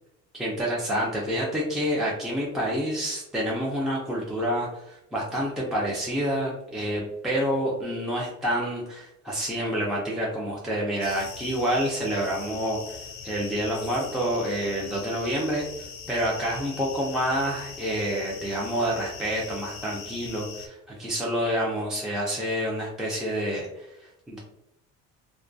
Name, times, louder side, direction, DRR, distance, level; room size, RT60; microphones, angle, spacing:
voice 1, 0.3-24.4, equal, ahead, -5 dB, 0.4 m, -28 dB
sound 1, 11.0-20.7, left 6 dB, 85° left, 0.5 m, -41 dB
2.2 x 2.2 x 2.5 m, 0.85 s
cardioid pair, 135°, 29 cm